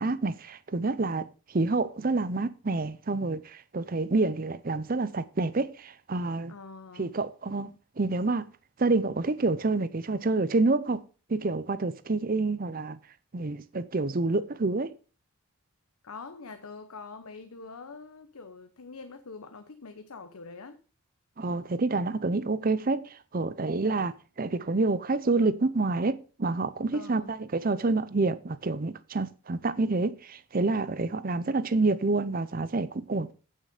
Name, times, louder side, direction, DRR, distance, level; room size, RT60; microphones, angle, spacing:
voice 1, 0.0-6.5 7.0-8.5 8.8-11.0 11.3-13.0 13.3-14.9 21.4-33.3, right 3 dB, 40° right, 0.6 m, -28 dB
voice 2, 6.5-7.1 16.0-20.8 26.9-27.3, left 4 dB, 85° left, 0.9 m, -44 dB
8.9 x 7.5 x 5.1 m
head